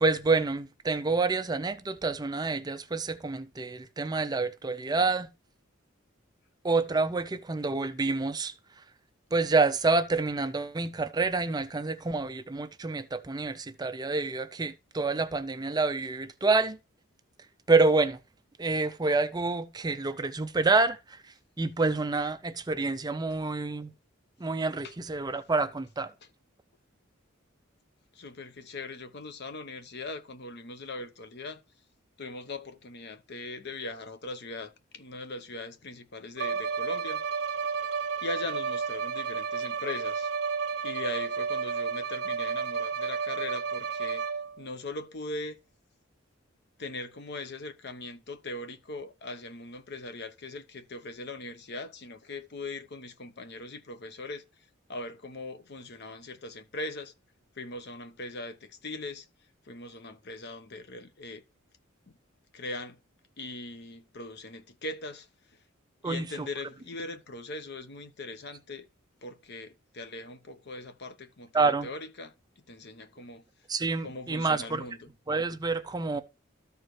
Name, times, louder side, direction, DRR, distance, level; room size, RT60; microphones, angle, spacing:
voice 1, 0.0-5.3 6.6-8.8 9.3-16.8 17.7-18.2 18.6-23.9 24.4-26.1 66.0-66.5 71.5-71.9 73.7-74.8 75.3-76.2, right 3 dB, 20° right, 0.4 m, -28 dB
voice 2, 28.1-31.6 32.2-37.2 38.2-40.3 40.8-44.2 44.6-45.6 46.8-54.4 54.9-57.1 57.6-59.3 59.7-61.4 62.5-63.0 63.4-65.3 66.0-68.9 69.2-73.4 74.0-75.1, left 2 dB, 55° left, 0.8 m, -40 dB
Bowed string instrument, 36.4-44.6, right 5 dB, 55° right, 1.1 m, -32 dB
13.5 x 4.6 x 3.1 m
head